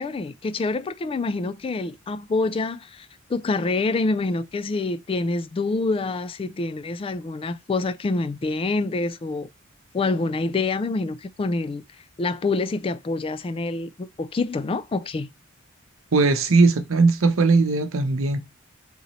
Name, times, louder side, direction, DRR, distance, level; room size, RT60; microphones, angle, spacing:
voice 1, 0.0-9.5 9.9-11.8 12.2-15.3, left 3 dB, 25° left, 0.3 m, -26 dB
voice 2, 16.1-18.4, right 3 dB, 70° right, 0.7 m, -19 dB
3.9 x 3.0 x 4.0 m
head